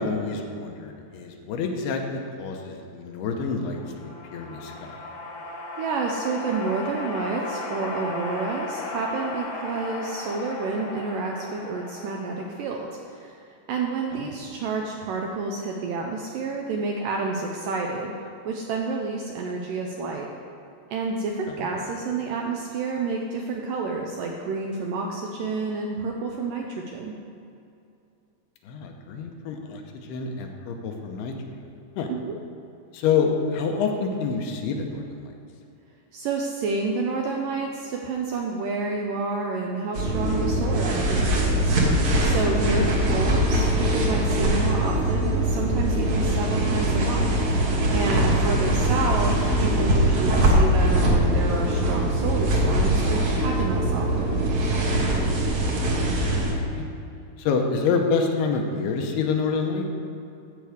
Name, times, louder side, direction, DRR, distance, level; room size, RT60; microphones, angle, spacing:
voice 1, 0.0-5.0 14.1-14.3 21.5-21.7 28.6-31.3 31.6-31.7 32.0-32.1 32.9-35.3 48.3-48.6 55.9-56.9 57.4-59.9, left 5 dB, 80° left, 3 dB, 2.9 m, -28 dB
sound 1, 3.5-13.0, left 2 dB, 65° left, 2.3 m, -36 dB
voice 2, 5.8-13.4 13.7-18.1 18.5-20.3 20.9-27.1 32.1-32.4 36.1-47.3 47.9-54.4, right 3 dB, 80° right, 1 dB, 2.0 m, -29 dB
sound 2, 39.9-56.5, right 1 dB, 55° right, 1.8 m, -22 dB
13.0 x 4.8 x 7.9 m, 2.6 s
omnidirectional pair, 4.7 m